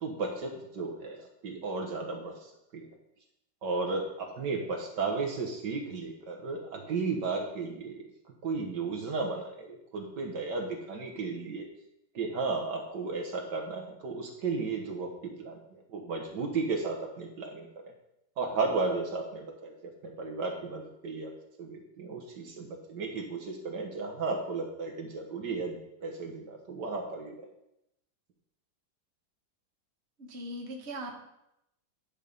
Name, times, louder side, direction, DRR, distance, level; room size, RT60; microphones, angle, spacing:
voice 1, 0.0-2.3 2.7-2.9 3.6-8.0 8.4-11.7 12.2-15.1 15.4-15.6 15.9-17.9 18.4-19.7 20.0-21.3 21.6-27.4, right 4 dB, 60° right, 1 dB, 1.8 m, -34 dB
voice 2, 30.2-31.2, right 1 dB, 35° right, 1 dB, 1.3 m, -39 dB
10.5 x 5.5 x 5.3 m, 0.82 s
omnidirectional pair, 2.3 m